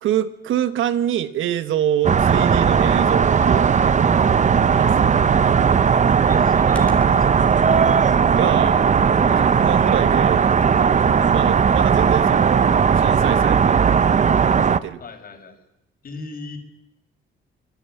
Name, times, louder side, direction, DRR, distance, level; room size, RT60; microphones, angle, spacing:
voice 1, 0.0-4.1 4.8-5.3 8.3-8.8 9.3-10.5 11.2-12.7 12.9-14.1 14.6-15.0, right 11 dB, 80° right, 12 dB, 1.4 m, -25 dB
sound 1, 2.0-14.8, right 6 dB, 35° right, 0.9 m, -17 dB
Computer keyboard, 4.5-11.4, equal, 5° left, 3.7 m, -39 dB
voice 2, 6.2-7.4 15.0-15.6 16.0-16.6, left 3 dB, 50° left, 7 dB, 5.2 m, -38 dB
25.5 x 19.5 x 8.7 m, 0.87 s
cardioid pair, 90°, 20 cm